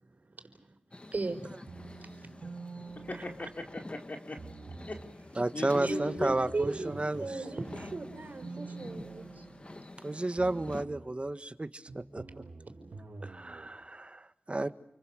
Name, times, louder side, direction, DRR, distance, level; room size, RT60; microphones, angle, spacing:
voice 1, 0.2-0.8 1.1-1.5 2.0-2.3 3.1-3.3 5.8-9.4, right 3 dB, 65° right, 6 dB, 4.9 m, -37 dB
sound 1, 0.9-10.9, left 1 dB, 35° left, 2.1 m, -48 dB
sound 2, 1.7-3.9 4.4-5.2 5.9-10.0 10.4-11.2 11.9-13.7, right 3 dB, 80° right, 3.0 m, -47 dB
voice 2, 3.0-4.4 4.9-5.0 5.5-6.3, left 2 dB, 55° left, 3 dB, 4.6 m, -38 dB
voice 3, 5.4-7.2 10.0-12.4 13.2-14.7, right 2 dB, 40° right, 11 dB, 1.7 m, -32 dB
29.5 x 24.0 x 6.6 m, 0.82 s
cardioid pair, 40°, 3 cm